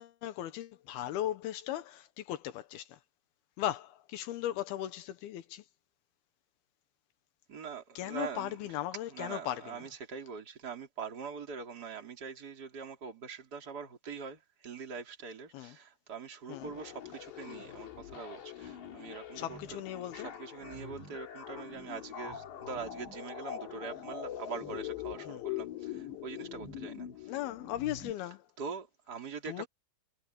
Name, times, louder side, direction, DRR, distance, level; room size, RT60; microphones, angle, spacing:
voice 1, 0.0-3.0 3.6-5.6 8.0-9.8 15.5-15.8 16.5-16.7 19.4-20.3 25.3-25.4 27.3-28.5 29.5-29.7, left 13 dB, 80° left, 2.2 m, -37 dB
voice 2, 7.5-8.5 9.1-19.8 20.1-27.3 28.6-29.7, right 5 dB, 20° right, 3.2 m, -43 dB
sound 1, 16.5-28.1, left 10 dB, 60° left, 5.2 m, -43 dB
omnidirectional pair, 5.9 m